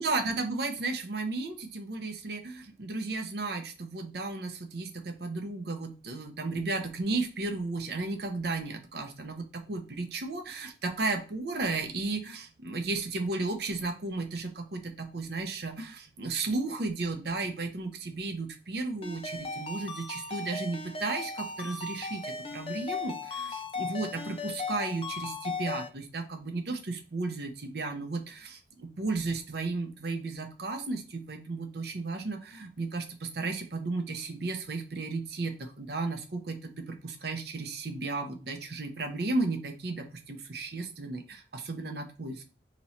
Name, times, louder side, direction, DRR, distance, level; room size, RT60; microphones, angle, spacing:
voice 1, 0.0-42.5, right 3 dB, 60° right, 5 dB, 0.7 m, -34 dB
Ringtone, 19.0-25.9, left 4 dB, 30° left, 0.4 m, -37 dB
3.0 x 2.9 x 4.1 m, 0.34 s
head